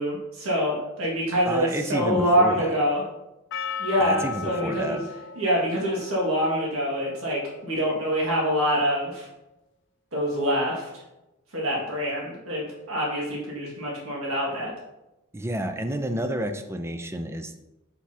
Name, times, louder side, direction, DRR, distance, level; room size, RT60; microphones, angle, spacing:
voice 1, 0.0-3.0 3.8-5.0 5.4-9.3 10.1-10.9 11.5-14.7, equal, 75° right, -4 dB, 1.8 m, -25 dB
voice 2, 1.5-2.8 4.0-5.0 15.3-17.6, right 1 dB, 10° right, 7 dB, 0.4 m, -30 dB
Percussion, 3.5-8.1, left 6 dB, 60° left, 0.4 m, -38 dB
6.1 x 6.0 x 2.8 m, 0.96 s
head